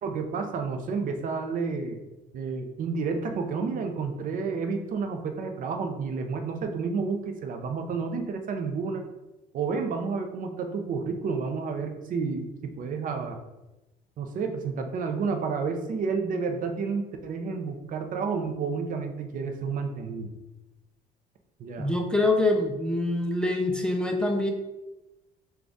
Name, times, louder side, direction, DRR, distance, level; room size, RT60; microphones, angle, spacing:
voice 1, 0.0-2.0 2.3-9.0 9.5-13.4 14.2-20.3 21.6-21.9, right 5 dB, 55° right, 5 dB, 0.5 m, -30 dB
voice 2, 21.8-24.5, left 2 dB, 5° left, 2 dB, 0.4 m, -25 dB
3.8 x 2.3 x 3.5 m, 1.0 s
cardioid pair, 110°, 17 cm